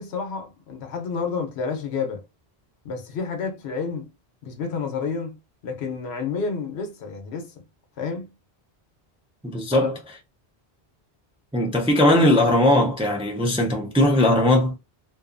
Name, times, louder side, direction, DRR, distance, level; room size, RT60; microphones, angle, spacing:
voice 1, 0.0-2.2 2.8-4.1 4.4-5.4 5.6-7.5 8.0-8.3 9.7-9.9, left 5 dB, 80° left, 1.0 m, -30 dB
voice 2, 9.4-10.0 11.5-14.8, left 1 dB, 10° right, 0.3 m, -19 dB
2.6 x 2.3 x 2.5 m
omnidirectional pair, 1.1 m